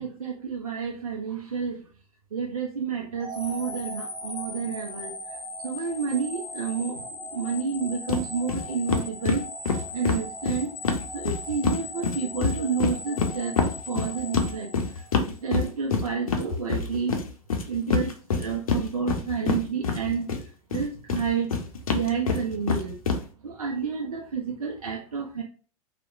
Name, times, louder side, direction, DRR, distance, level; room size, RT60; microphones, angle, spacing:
voice 1, 0.0-1.8 2.3-5.4 5.6-9.4 9.9-10.7 11.1-14.7 15.3-17.2 17.7-18.1 18.4-21.5 21.9-23.0 23.4-25.4, right 6 dB, 85° right, 0 dB, 0.4 m, -30 dB
sound 1, 3.2-15.4, left 1 dB, 15° left, 0.7 m, -38 dB
sound 2, 8.1-8.2 8.5-8.6 8.9-11.8 12.0-20.4 20.7-23.2, left 5 dB, 75° left, 0.5 m, -26 dB
2.8 x 2.0 x 2.4 m, 0.39 s
figure-of-eight pair, 90°, 18 cm